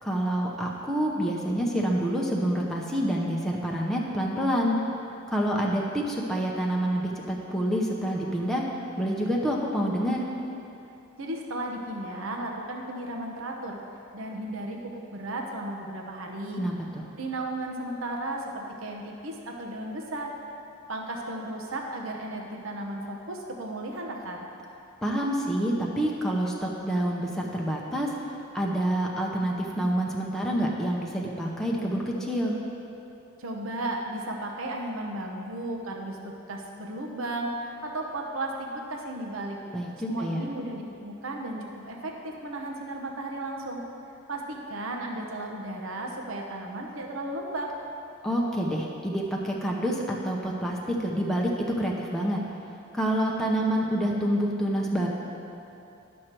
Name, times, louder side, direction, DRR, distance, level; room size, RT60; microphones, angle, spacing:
voice 1, 0.0-4.8 5.3-8.6 9.0-10.2 16.6-17.0 25.0-32.6 39.7-40.4 48.2-52.4 52.9-55.1, equal, ahead, -3 dB, 0.7 m, -27 dB
voice 2, 11.2-13.8 14.1-16.7 17.2-20.3 20.9-24.5 33.4-39.6 40.1-43.8 44.3-47.7, right 1 dB, 70° right, 1 dB, 0.9 m, -34 dB
11.5 x 6.4 x 4.5 m, 2.8 s
head